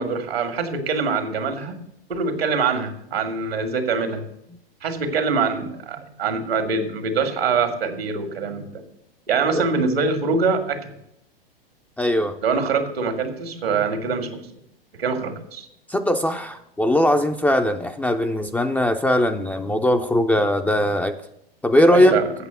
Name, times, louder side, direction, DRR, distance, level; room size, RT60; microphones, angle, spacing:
voice 1, 0.0-1.8 2.1-4.2 4.8-8.7 9.3-11.0 12.4-14.4 14.9-15.7 21.9-22.3, right 4 dB, 85° right, 6 dB, 1.8 m, -24 dB
voice 2, 12.0-12.4 15.9-21.2 21.6-22.2, left 1 dB, 5° left, 6 dB, 0.4 m, -20 dB
8.2 x 6.7 x 7.8 m, 0.78 s
hypercardioid pair, 115°, 30 cm